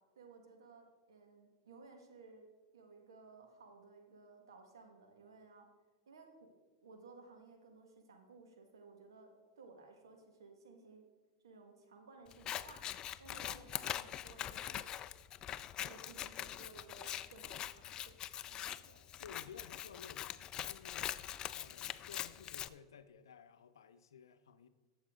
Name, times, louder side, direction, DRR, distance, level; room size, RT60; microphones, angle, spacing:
voice 1, 0.1-2.5 2.7-5.7 6.1-6.5 6.8-9.3 9.6-11.0 11.4-12.8 13.2-14.8 15.8-18.1 18.5-19.0, right 3 dB, 90° right, 3 dB, 1.7 m, -58 dB
Scissors, 12.3-22.7, left 11 dB, 35° left, 0.4 m, -43 dB
voice 2, 19.2-21.2 21.5-24.7, left 7 dB, 90° left, 11 dB, 0.6 m, -55 dB
12.5 x 7.2 x 3.7 m, 1.3 s
hypercardioid pair, 110°, 2 cm